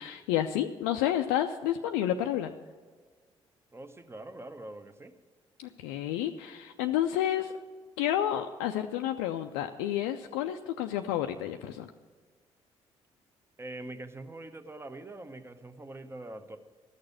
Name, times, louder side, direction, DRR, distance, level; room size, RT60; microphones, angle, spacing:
voice 1, 0.0-2.5 5.6-7.5 8.0-11.9, left 11 dB, 65° left, 6 dB, 0.4 m, -30 dB
voice 2, 3.7-5.1 13.6-16.6, right 2 dB, 15° right, 9 dB, 0.9 m, -43 dB
13.5 x 6.6 x 8.4 m, 1.5 s
figure-of-eight pair, 45°, 15 cm